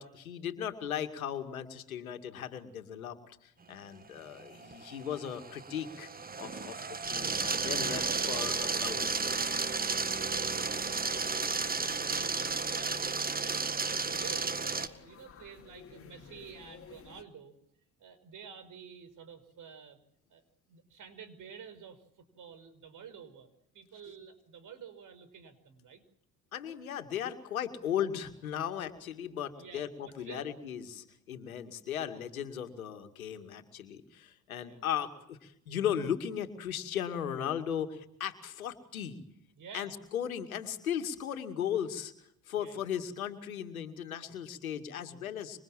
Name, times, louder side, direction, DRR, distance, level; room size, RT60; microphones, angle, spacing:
voice 1, 0.0-6.1 6.4-9.4 26.5-39.2 39.7-42.1 42.5-45.6, left 9 dB, 85° left, 8 dB, 2.4 m, -37 dB
sound 1, 4.3-14.9, right 4 dB, 20° right, 1.8 m, -33 dB
sound 2, 7.0-17.2, left 7 dB, 35° left, 2.8 m, -54 dB
voice 2, 8.0-8.6 10.2-17.5 18.0-20.0 20.3-20.4 20.7-23.5 23.7-26.0 29.5-30.5 31.6-31.8 34.6-34.8 39.6-39.9 42.5-42.9, right 7 dB, 45° right, 13 dB, 5.5 m, -50 dB
27.0 x 25.5 x 7.5 m, 0.75 s
hypercardioid pair, 60°, 41 cm